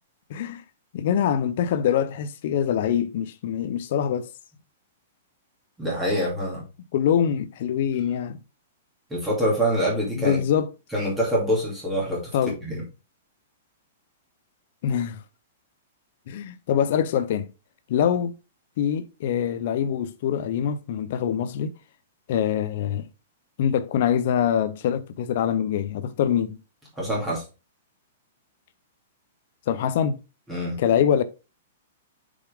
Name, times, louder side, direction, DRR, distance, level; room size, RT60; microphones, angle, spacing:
voice 1, 0.3-0.6 0.9-4.3 6.9-8.4 10.2-10.7 12.3-12.6 14.8-15.2 16.3-17.5 17.9-18.3 18.8-21.7 22.3-23.1 23.6-26.6 29.7-30.2 30.8-31.2, left 9 dB, 45° left, 0.7 m, -24 dB
voice 2, 5.8-6.6 9.1-10.4 10.9-12.3 12.6-12.8 27.0-27.4 30.5-30.8, equal, 5° right, 2.6 m, -25 dB
6.9 x 5.2 x 3.6 m
hypercardioid pair, 175°, 0 cm